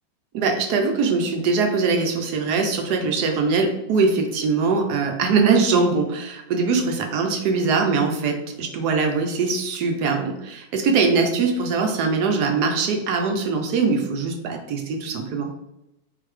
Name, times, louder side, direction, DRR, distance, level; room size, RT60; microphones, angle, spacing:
voice 1, 0.3-15.5, right 4 dB, 70° right, 3 dB, 1.1 m, -22 dB
3.8 x 2.9 x 3.1 m, 0.89 s
omnidirectional pair, 2.0 m